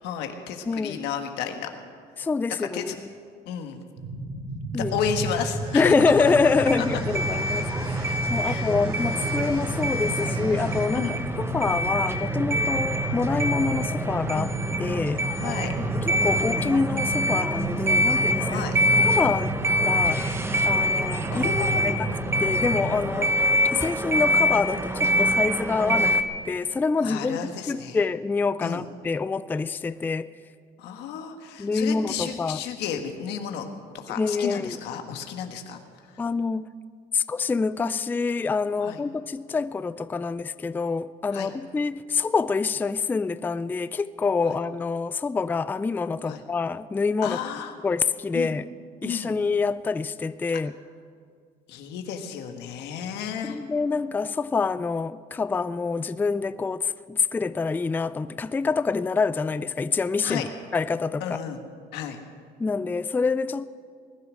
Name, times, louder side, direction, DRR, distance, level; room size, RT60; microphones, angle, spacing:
voice 1, 0.0-1.7 2.7-2.9 3.4-3.8 4.7-5.9 6.8-6.9 8.4-8.7 10.9-11.2 15.4-15.7 18.5-18.8 21.3-22.0 23.1-23.3 27.0-28.0 28.6-28.8 30.8-33.8 34.0-35.8 38.8-39.0 41.3-41.5 46.3-46.4 47.2-47.7 48.3-48.5 49.0-49.4 51.7-53.6 60.2-60.5 61.2-61.6 61.9-62.2, left 8 dB, 90° left, 1.5 m, -32 dB
voice 2, 0.7-1.0 2.2-2.9 4.7-4.9 5.7-14.5 14.8-15.2 15.9-18.6 19.0-19.6 19.8-20.3 20.7-21.5 21.8-23.3 23.7-27.4 27.7-30.3 31.6-32.6 34.2-34.8 36.2-36.7 37.1-47.4 47.8-48.7 49.0-50.7 53.4-61.4 62.6-63.6, left 4 dB, 10° left, 0.3 m, -26 dB
sound 1, 4.0-23.0, right 2 dB, 80° right, 5.5 m, -32 dB
sound 2, 5.6-11.1, right 1 dB, 35° right, 4.1 m, -41 dB
sound 3, 6.7-26.2, equal, 15° right, 1.1 m, -25 dB
19.5 x 10.5 x 6.4 m
cardioid pair, 110°, 17 cm